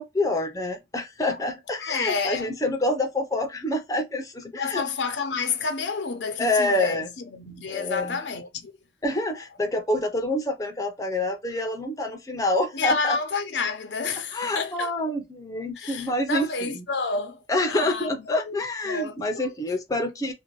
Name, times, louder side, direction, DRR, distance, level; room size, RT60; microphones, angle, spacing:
voice 1, 0.0-4.8 6.4-7.1 7.7-8.2 9.0-13.2 14.3-16.5 17.5-20.3, left 1 dB, 20° left, 0.5 m, -27 dB
voice 2, 1.8-2.5 4.5-8.7 12.7-14.9 15.8-18.1 18.5-19.4, left 4 dB, 75° left, 0.6 m, -30 dB
2.6 x 2.2 x 2.9 m
head